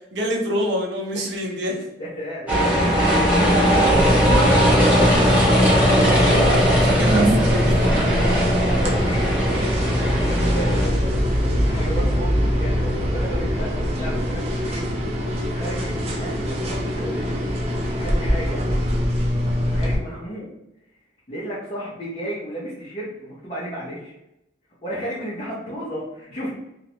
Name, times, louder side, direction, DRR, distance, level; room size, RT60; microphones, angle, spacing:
voice 1, 0.1-1.9 6.5-7.8 13.9-14.2, equal, 80° right, 1 dB, 0.6 m, -27 dB
voice 2, 2.0-7.2 8.7-9.7 10.1-14.8 15.4-18.6 19.6-20.5 21.3-24.2 24.8-26.5, right 1 dB, 35° left, -8 dB, 0.7 m, -33 dB
sound 1, 2.5-10.9, equal, 10° right, 0.9 m, -19 dB
sound 2, 3.9-19.9, equal, 35° right, 0.5 m, -24 dB
sound 3, 9.6-14.8, equal, 70° left, 0.9 m, -25 dB
2.5 x 2.0 x 2.8 m, 0.85 s
head